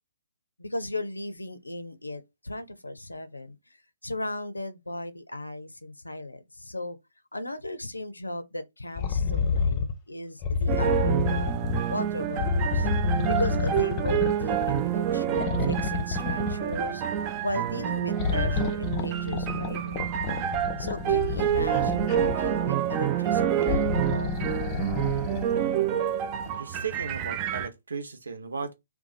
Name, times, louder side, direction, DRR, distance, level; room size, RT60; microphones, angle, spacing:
voice 1, 0.6-3.6 4.0-7.0 7.3-11.6 11.9-12.9 13.3-17.0 17.4-20.1 20.8-24.5, left 1 dB, 85° left, 0.5 m, -36 dB
sound 1, 9.0-9.9 10.4-11.9 12.4-15.0 15.4-16.9 18.1-22.6 23.5-25.5 26.5-26.6, left 5 dB, 30° left, 0.5 m, -29 dB
sound 2, 10.7-27.7, right 10 dB, 25° right, 0.4 m, -28 dB
voice 2, 25.5-26.0 26.5-28.7, right 5 dB, 75° right, 0.7 m, -36 dB
2.7 x 2.2 x 4.0 m
figure-of-eight pair, 130°, 0 cm